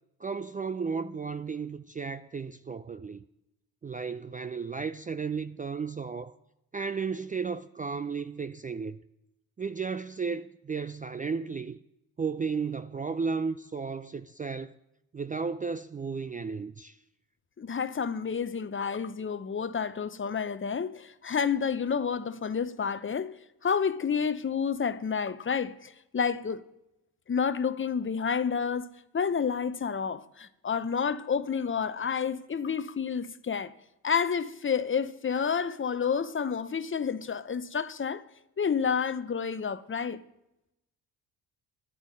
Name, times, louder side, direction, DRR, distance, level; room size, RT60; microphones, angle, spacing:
voice 1, 0.2-3.2 3.8-6.3 6.7-9.0 9.6-11.8 12.2-14.8 15.1-17.0, right 5 dB, 20° right, 0.4 m, -34 dB
voice 2, 17.6-23.3 23.6-26.6 27.3-28.9 29.1-33.7 34.0-38.2 38.6-40.2, left 6 dB, 30° left, 0.7 m, -29 dB
11.0 x 9.0 x 7.5 m
hypercardioid pair, 55°, 44 cm